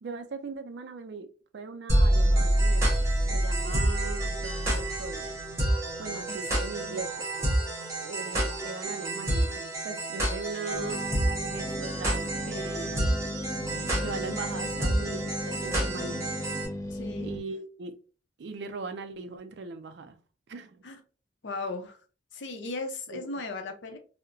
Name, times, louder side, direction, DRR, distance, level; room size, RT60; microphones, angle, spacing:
voice 1, 0.0-3.1 3.3-5.4 6.0-7.5 8.0-11.1 11.5-13.1 14.0-16.2 17.2-18.0 18.4-20.2 20.5-20.8 23.1-23.3, right 4 dB, 70° right, 0.4 m, -39 dB
sound 1, 1.9-16.7, right 1 dB, 15° right, 0.8 m, -28 dB
sound 2, 10.7-17.4, left 1 dB, 15° left, 0.4 m, -36 dB
voice 2, 16.9-17.3 20.8-21.0 21.4-22.0 22.3-24.0, left 3 dB, 85° left, 0.6 m, -36 dB
2.7 x 2.1 x 2.5 m
head